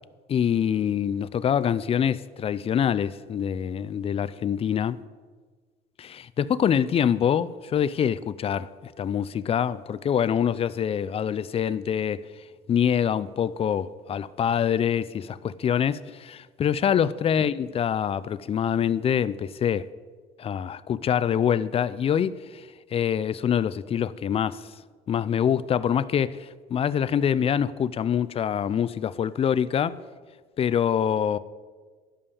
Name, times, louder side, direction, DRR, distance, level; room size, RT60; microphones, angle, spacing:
voice 1, 0.3-5.0 6.0-12.2 12.7-19.9 20.4-22.6 22.9-24.6 25.1-26.4 26.7-30.0 30.6-31.4, left 8 dB, 35° left, 0.4 m, -25 dB
11.5 x 5.4 x 6.9 m
cardioid pair, 110°, 17 cm